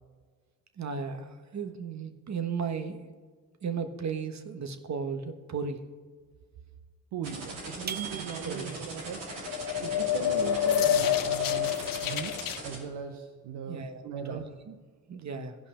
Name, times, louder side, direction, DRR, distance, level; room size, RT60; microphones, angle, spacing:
voice 1, 0.8-3.1 3.6-5.8 7.8-7.9 8.1-8.8 13.7-14.0 14.3-14.7 15.1-15.6, right 5 dB, 40° right, 7 dB, 1.3 m, -35 dB
voice 2, 7.1-9.5 9.8-14.4, right 8 dB, 70° right, 4 dB, 1.0 m, -39 dB
sound 1, 7.2-12.8, right 3 dB, 90° right, 2.8 m, -40 dB
sound 2, 7.9-9.0, right 7 dB, 25° right, 0.5 m, -40 dB
sound 3, 9.3-12.6, left 10 dB, 55° left, 0.7 m, -27 dB
16.0 x 5.4 x 5.1 m, 1.5 s
supercardioid pair, 55°, 41 cm